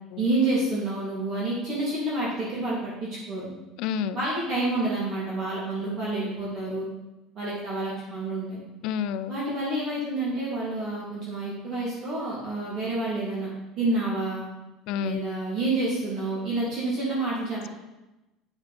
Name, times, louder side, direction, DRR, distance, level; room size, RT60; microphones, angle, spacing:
voice 1, 0.2-3.5 4.1-6.9 7.3-8.6 9.3-13.5 13.8-14.4 15.0-17.7, right 2 dB, 40° right, -6 dB, 2.8 m, -28 dB
voice 2, 3.8-4.2 8.8-9.4 14.9-15.2, left 8 dB, 60° left, 14 dB, 0.4 m, -28 dB
8.7 x 6.0 x 4.3 m, 1.0 s
cardioid pair, 145°, 0 cm